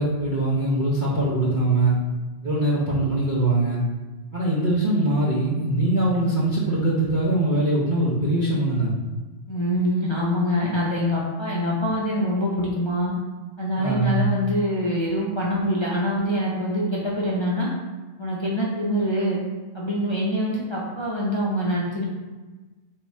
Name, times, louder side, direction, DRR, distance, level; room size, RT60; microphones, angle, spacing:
voice 1, 0.0-2.0 2.4-3.8 4.3-8.9 13.8-14.3, right 2 dB, 45° right, -9 dB, 0.9 m, -22 dB
voice 2, 9.5-13.1 13.6-17.7 18.2-19.4 19.7-22.1, equal, 40° left, -6 dB, 0.4 m, -24 dB
3.5 x 2.8 x 4.1 m, 1.2 s
omnidirectional pair, 1.3 m